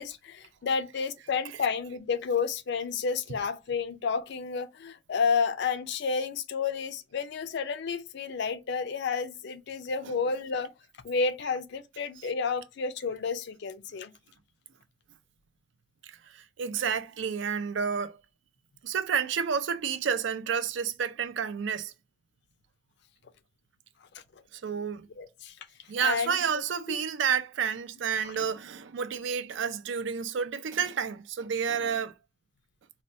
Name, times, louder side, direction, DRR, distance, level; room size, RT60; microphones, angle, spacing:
voice 1, 0.0-10.7 11.0-14.1 25.2-25.5 26.0-27.0, left 5 dB, 65° left, 0.4 m, -31 dB
voice 2, 16.0-18.2 18.8-21.9 24.5-25.1 25.9-32.1, right 7 dB, 70° right, 0.4 m, -30 dB
4.3 x 2.2 x 2.6 m
head